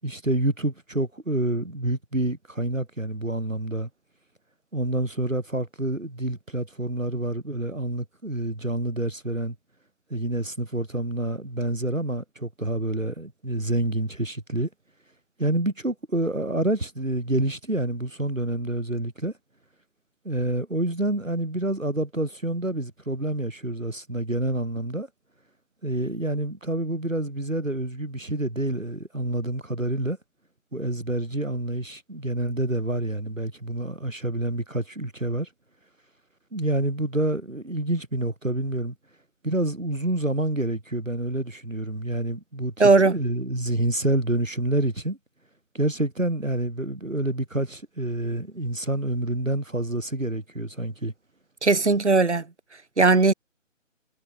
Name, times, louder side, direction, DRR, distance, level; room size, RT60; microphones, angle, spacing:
voice 1, 0.0-3.9 4.7-9.5 10.1-14.7 15.4-19.3 20.2-25.1 25.8-30.2 30.7-35.5 36.5-38.9 39.4-42.7 43.1-45.2 45.7-51.1, right 1 dB, 80° right, 7.5 m, -28 dB
voice 2, 42.8-43.2 51.6-52.4 53.0-53.3, right 3 dB, 60° right, 3.5 m, -18 dB
figure-of-eight pair, 150°, 38 cm